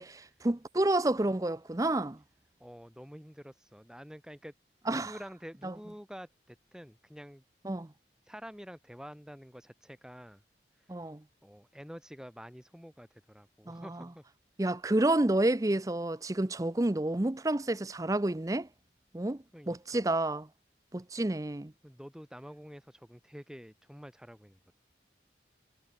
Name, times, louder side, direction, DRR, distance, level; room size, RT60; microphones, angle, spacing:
voice 1, 0.0-2.2 4.9-5.2 5.6-5.7 7.6-7.9 10.9-11.2 13.7-14.1 14.6-18.7 19.1-20.5 20.9-21.7, right 1 dB, 20° right, 0.6 m, -30 dB
voice 2, 2.6-4.5 4.9-7.4 8.2-10.4 10.8-11.0 11.4-14.2 19.5-20.0 21.8-24.6, equal, 5° right, 3.1 m, -48 dB
head